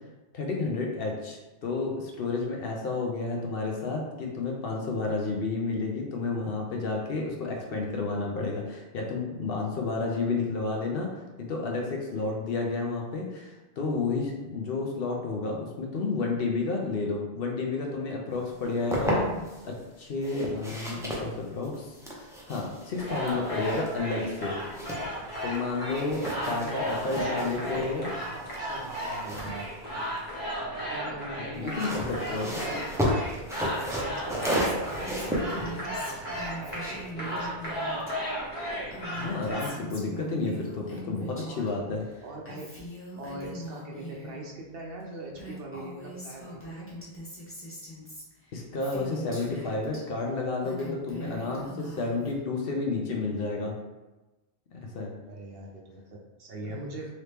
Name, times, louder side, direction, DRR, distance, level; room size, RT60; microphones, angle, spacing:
voice 1, 0.3-24.6 25.2-28.1 31.4-32.5 39.2-42.0 48.5-53.7 54.7-55.1, left 3 dB, 60° left, 0 dB, 0.8 m, -31 dB
sound 1, 18.5-19.6 20.2-25.6 25.9-30.5 31.5-37.1, equal, 5° right, 0.3 m, -34 dB
sound 2, 23.0-39.7, equal, 40° left, 1.1 m, -35 dB
voice 2, 26.1-29.7 30.8-33.5 33.8-37.8 40.4-40.6 41.4-41.7 42.2-42.7 43.2-46.9 55.3-57.1, right 2 dB, 65° right, 0 dB, 0.7 m, -41 dB
Female speech woman speaking, 34.5-38.1 38.4-41.7 42.0-44.4 45.0-45.1 45.3-50.0 50.4-52.4, equal, 15° left, 0.7 m, -42 dB
3.0 x 2.8 x 3.3 m, 1.1 s
omnidirectional pair, 1.2 m